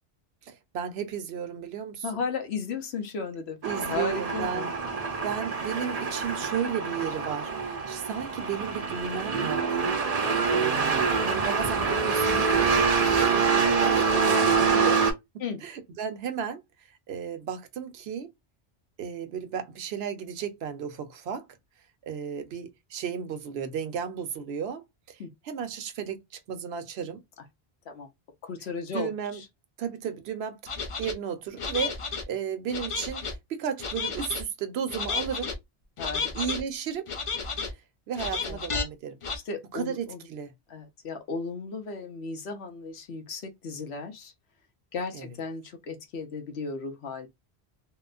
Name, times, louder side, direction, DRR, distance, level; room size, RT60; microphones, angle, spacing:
voice 1, 0.4-2.2 3.6-4.7 5.2-9.8 10.5-15.1 15.3-16.6 17.1-18.3 19.0-21.4 22.0-27.2 28.9-29.4 29.8-30.6 31.0-32.0 32.3-35.5 36.3-37.0 37.7-37.8 38.1-39.2 39.7-40.5 45.1-45.3, right 8 dB, 70° right, 0.9 m, -34 dB
voice 2, 2.0-4.7 15.4-15.6 25.2-25.3 27.9-28.1 28.4-29.5 36.0-36.3 38.5-38.6 39.4-40.2 40.7-44.3 44.9-47.3, left 4 dB, 80° left, 1.0 m, -35 dB
sound 1, 3.6-15.1, right 5 dB, 45° right, 0.6 m, -25 dB
sound 2, 30.7-31.1 31.6-32.2 32.7-33.4 33.8-34.4 34.9-35.5 36.0-36.6 37.1-37.7 38.2-38.8 39.2-39.4, left 4 dB, 45° left, 0.4 m, -32 dB
2.9 x 2.1 x 2.4 m
omnidirectional pair, 1.1 m